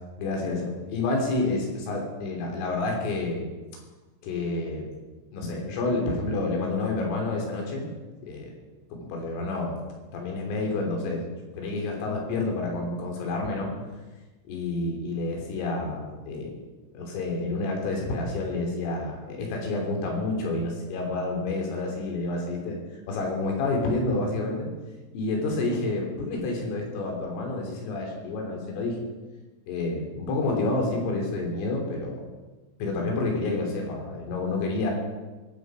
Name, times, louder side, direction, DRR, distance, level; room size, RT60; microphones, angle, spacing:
voice 1, 0.2-3.4 4.2-4.9 5.3-7.9 8.2-8.5 8.9-9.8 10.1-11.2 11.6-13.7 14.5-16.5 16.9-22.8 23.1-24.7 25.1-29.0 29.7-32.2 32.8-34.9, left 2 dB, 75° left, 0 dB, 5.8 m, -29 dB
21.5 x 12.5 x 4.9 m, 1.2 s
omnidirectional pair, 5.9 m